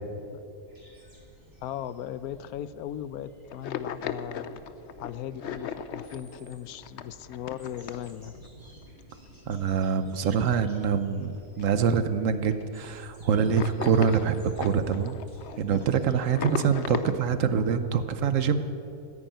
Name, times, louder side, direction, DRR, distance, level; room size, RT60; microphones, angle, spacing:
sound 1, 0.7-17.8, right 1 dB, 15° right, 4.1 m, -54 dB
voice 1, 1.6-4.6 5.0-8.3, left 10 dB, 85° left, 16 dB, 1.1 m, -38 dB
sound 2, 3.5-8.5 8.8-9.0 9.8-9.9 10.2-10.3 10.7-11.3 11.6-11.7 11.9-12.1 12.5-12.9 13.4-17.2, left 7 dB, 60° left, 0.9 m, -36 dB
voice 2, 9.5-15.2 15.6-18.6, right 7 dB, 65° right, 11 dB, 1.1 m, -25 dB
14.5 x 10.0 x 9.1 m, 2.7 s
omnidirectional pair, 1.5 m